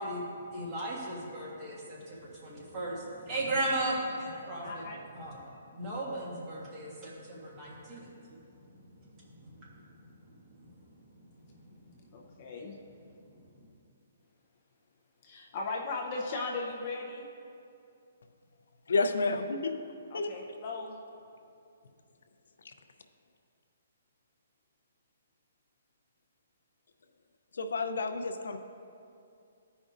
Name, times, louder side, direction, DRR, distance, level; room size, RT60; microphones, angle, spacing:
voice 1, 0.0-4.8 5.1-5.4 5.7-12.2 13.1-13.3 13.5-13.6, right 1 dB, 20° right, -6 dB, 1.6 m, -38 dB
voice 2, 4.6-5.0 12.1-12.8 15.2-17.3 20.1-21.0, left 3 dB, 30° left, -1 dB, 0.6 m, -37 dB
voice 3, 18.9-19.8 20.1-20.4 22.6-22.7 27.5-28.6, left 3 dB, 80° left, 7 dB, 0.5 m, -30 dB
14.5 x 5.2 x 2.5 m, 2.6 s
hypercardioid pair, 170°, 0 cm